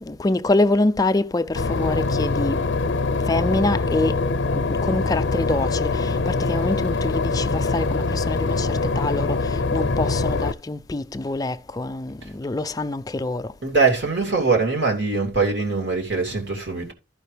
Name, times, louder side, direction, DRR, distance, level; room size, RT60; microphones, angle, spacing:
voice 1, 0.0-2.7 3.3-4.2 4.5-13.5, left 2 dB, 20° left, 0.4 m, -25 dB
Boat Water vehicle / Engine, 1.6-10.5, left 3 dB, 70° left, 0.6 m, -23 dB
voice 2, 13.6-16.9, right 4 dB, 65° right, 2.8 m, -22 dB
14.5 x 5.1 x 3.3 m
head